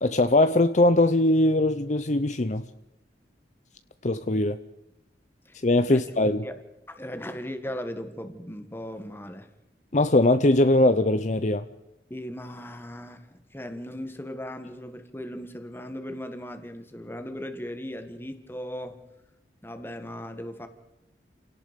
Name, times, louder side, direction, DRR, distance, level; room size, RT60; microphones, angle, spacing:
voice 1, 0.0-2.6 4.0-4.6 5.6-6.4 9.9-11.6, left 2 dB, 40° left, 11 dB, 0.7 m, -21 dB
voice 2, 6.4-9.5 12.1-19.0 19.6-20.7, equal, 10° left, 8 dB, 1.7 m, -37 dB
29.5 x 17.5 x 5.3 m, 0.93 s
head